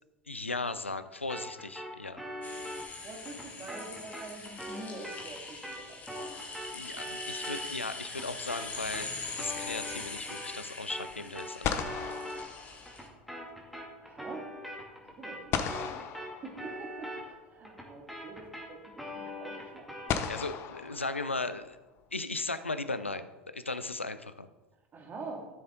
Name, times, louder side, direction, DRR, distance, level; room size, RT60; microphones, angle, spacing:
voice 1, 0.3-2.2 6.7-9.1 9.4-12.2 20.3-21.8 22.1-24.5, left 3 dB, 85° left, 12 dB, 0.6 m, -37 dB
sound 1, 1.3-10.6 10.9-20.2, equal, ahead, 2.5 m, -43 dB
sound 2, 2.4-13.1, left 3 dB, 25° left, 1.8 m, -42 dB
voice 2, 3.0-6.3 14.0-14.5 15.2-15.6 15.8-16.0 16.4-20.4 24.9-25.5, right 3 dB, 30° right, 2 dB, 2.2 m, -45 dB
sound 3, 6.1-7.0 11.1-11.2 11.6-13.4 15.5-17.1 18.4-18.5 20.1-21.7, left 8 dB, 40° left, 0.8 m, -36 dB
13.5 x 7.1 x 3.8 m, 1.1 s
figure-of-eight pair, 80°, 6 cm